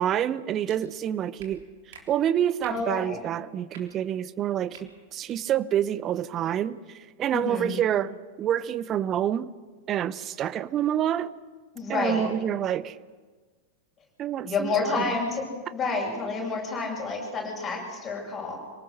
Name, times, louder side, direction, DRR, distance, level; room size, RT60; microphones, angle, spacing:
voice 1, 0.0-1.6 2.1-9.5 9.9-11.3 11.9-13.0 14.2-15.0, right 10 dB, 30° right, 16 dB, 0.7 m, -27 dB
sound 1, 0.7-0.8 1.4-1.5 1.9-2.0 2.6-2.8 3.7-3.8 4.7-4.8 5.2-5.4, right 6 dB, 55° right, 3.5 m, -47 dB
voice 2, 2.7-3.2 7.3-7.7 11.7-12.2 14.4-15.4 15.7-18.6, left 4 dB, 20° left, -3 dB, 7.9 m, -29 dB
26.5 x 18.5 x 6.6 m, 1.4 s
figure-of-eight pair, 90°, 0 cm